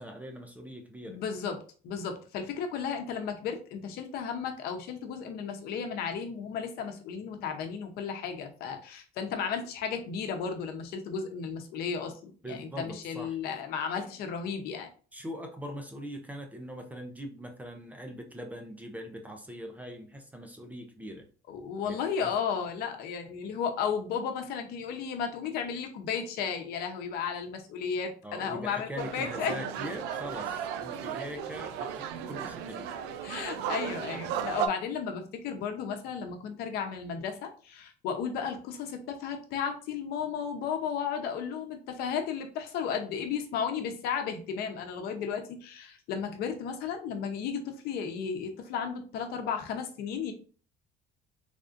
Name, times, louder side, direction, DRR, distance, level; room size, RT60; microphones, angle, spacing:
voice 1, 0.0-1.2 12.4-13.4 15.1-21.2 21.8-22.0 22.2-22.3 28.2-32.9, equal, 10° right, 4 dB, 0.5 m, -41 dB
voice 2, 1.1-1.6 1.8-14.9 21.5-29.5 33.2-50.3, left 6 dB, 65° left, 5 dB, 0.8 m, -34 dB
sound 1, 29.0-34.7, right 8 dB, 85° right, 0.5 m, -35 dB
3.8 x 3.5 x 2.5 m, 0.39 s
cardioid pair, 150°, 17 cm